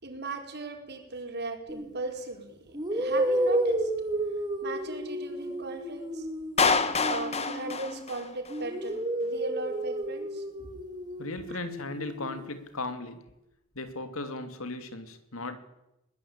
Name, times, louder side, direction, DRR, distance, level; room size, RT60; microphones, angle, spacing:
voice 1, 0.0-3.9 4.6-6.3 7.1-10.7 11.5-11.6, right 2 dB, 55° right, 5.0 m, -38 dB
sound 1, 1.7-1.9 2.7-8.1 8.5-12.4, right 1 dB, 20° right, 3.0 m, -32 dB
Clapping, 6.6-8.6, left 5 dB, 30° left, 1.5 m, -27 dB
voice 2, 11.2-13.3 13.7-15.6, left 2 dB, 90° left, 2.8 m, -37 dB
22.0 x 19.5 x 8.8 m
head